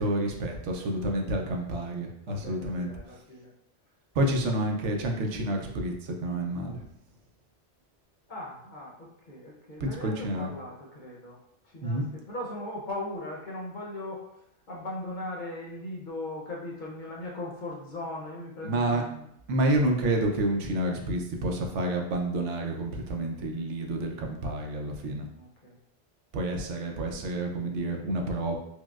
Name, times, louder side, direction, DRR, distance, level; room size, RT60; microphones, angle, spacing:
voice 1, 0.0-2.9 4.2-6.8 9.8-10.5 11.8-12.1 18.6-19.0 19.5-25.3 26.3-28.6, right 1 dB, 85° right, 2 dB, 0.9 m, -29 dB
voice 2, 0.7-1.3 2.3-3.5 8.3-19.3 25.3-25.8 28.0-28.3, left 1 dB, 50° left, -3 dB, 0.7 m, -39 dB
4.6 x 2.1 x 2.3 m, 0.76 s
omnidirectional pair, 1.2 m